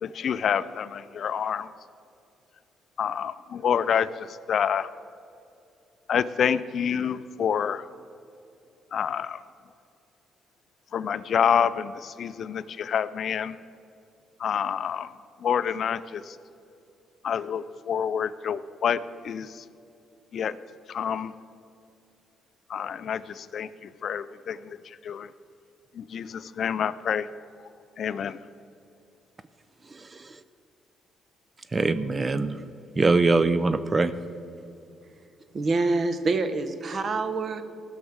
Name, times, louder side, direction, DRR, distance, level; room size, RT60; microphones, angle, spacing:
voice 1, 0.0-1.7 3.0-4.9 6.1-7.9 8.9-9.4 10.9-13.6 14.4-16.4 17.2-19.6 20.3-20.6 20.9-21.3 22.7-25.3 25.9-27.3 28.0-28.4, left 8 dB, 55° left, 0.4 m, -28 dB
voice 2, 29.9-30.4 31.7-32.6 33.0-34.1, right 3 dB, 25° right, 0.4 m, -23 dB
voice 3, 35.5-37.6, right 3 dB, 40° right, 0.9 m, -26 dB
16.0 x 6.4 x 7.2 m
cardioid pair, 105°, 0 cm